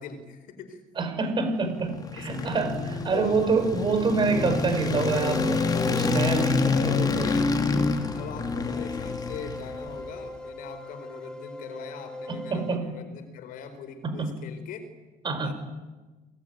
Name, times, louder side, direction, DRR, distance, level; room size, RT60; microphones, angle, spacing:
voice 1, 0.0-0.8 2.2-2.5 3.1-3.4 6.7-7.5 8.1-14.8 15.4-15.5, left 6 dB, 60° left, 10 dB, 4.6 m, -40 dB
voice 2, 1.0-7.3 12.3-12.8 14.0-14.4 15.2-15.5, right 4 dB, 30° right, 9 dB, 5.1 m, -27 dB
sound 1, 1.6-10.0, left 4 dB, 25° left, 3.0 m, -27 dB
sound 2, 4.2-12.8, left 1 dB, 5° left, 3.0 m, -41 dB
27.0 x 20.5 x 9.4 m, 1.2 s
cardioid pair, 130°, 16 cm